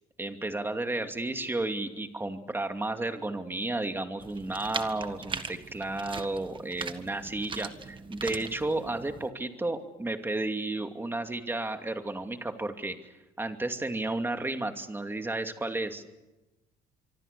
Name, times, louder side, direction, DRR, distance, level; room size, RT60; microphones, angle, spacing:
voice 1, 0.2-13.1 13.4-16.0, right 2 dB, 15° right, 6 dB, 2.5 m, -32 dB
sound 1, 4.2-9.3, right 5 dB, 30° right, 1.7 m, -40 dB
25.5 x 24.0 x 7.0 m, 1.0 s
cardioid pair, 110°, 17 cm